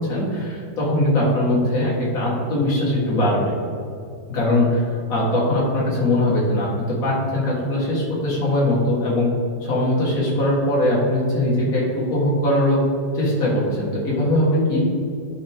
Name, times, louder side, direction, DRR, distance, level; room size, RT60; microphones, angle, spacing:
voice 1, 0.1-3.5 4.3-9.3 9.6-12.8 13.1-14.8, left 1 dB, 50° left, -5 dB, 2.2 m, -21 dB
11.0 x 4.7 x 3.6 m, 2.5 s
omnidirectional pair, 1.9 m